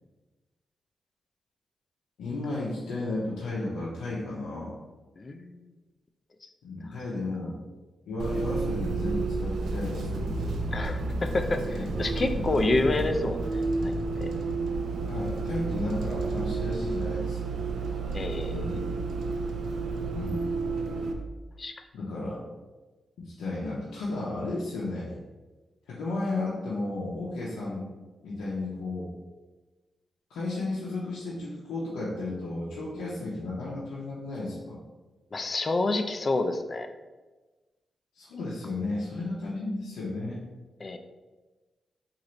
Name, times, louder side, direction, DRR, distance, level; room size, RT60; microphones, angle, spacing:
voice 1, 2.2-4.8 6.6-7.6 8.1-10.3 11.7-11.9 12.3-12.7 13.0-13.1 15.0-17.6 18.5-18.8 20.1-20.4 21.9-22.4 23.2-25.1 25.9-27.9 28.2-29.1 30.3-34.8 38.1-40.4, left 2 dB, 90° left, -7 dB, 0.6 m, -33 dB
voice 2, 5.2-5.6 6.4-6.5 10.7-14.3 18.1-18.6 21.6-21.7 35.3-36.9 40.8-41.0, left 2 dB, 45° left, 7 dB, 0.4 m, -29 dB
Bus, 8.2-21.1, right 3 dB, 80° right, 0.4 m, -31 dB
3.1 x 2.5 x 3.9 m, 1.2 s
supercardioid pair, 55°, 0 cm